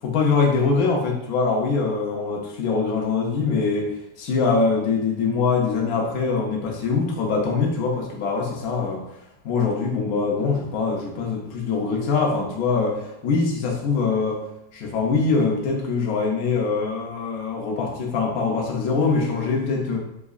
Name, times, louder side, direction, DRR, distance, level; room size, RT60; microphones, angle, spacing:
voice 1, 0.0-9.0 9.4-14.4 14.7-20.0, left 4 dB, 70° left, -1 dB, 0.9 m, -23 dB
4.7 x 2.5 x 2.3 m, 0.84 s
omnidirectional pair, 1.9 m